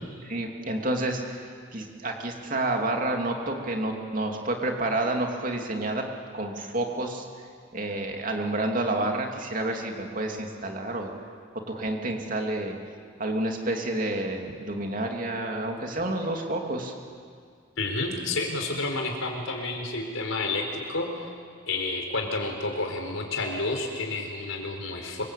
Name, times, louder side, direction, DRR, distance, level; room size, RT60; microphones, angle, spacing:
voice 1, 0.2-1.4 1.7-6.0 6.3-7.2 7.7-11.1 11.7-12.8 13.2-16.9, right 2 dB, 40° right, 2 dB, 2.8 m, -29 dB
voice 2, 17.8-21.3 21.7-25.2, left 2 dB, 80° left, 3 dB, 4.5 m, -30 dB
26.5 x 23.5 x 8.5 m, 2.1 s
head